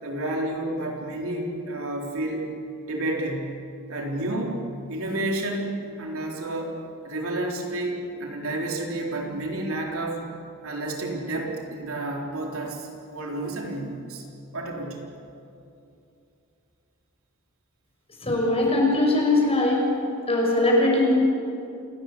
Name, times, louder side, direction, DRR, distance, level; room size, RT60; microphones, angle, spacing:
voice 1, 0.0-2.5 2.8-3.6 3.9-5.7 6.0-6.8 7.0-10.2 10.6-14.2 14.5-15.0 18.6-18.7, right 1 dB, 65° right, 0 dB, 3.9 m, -30 dB
voice 2, 18.2-19.9 20.3-21.1, left 2 dB, 30° left, -1 dB, 6.2 m, -21 dB
28.0 x 18.0 x 8.4 m, 2.7 s
head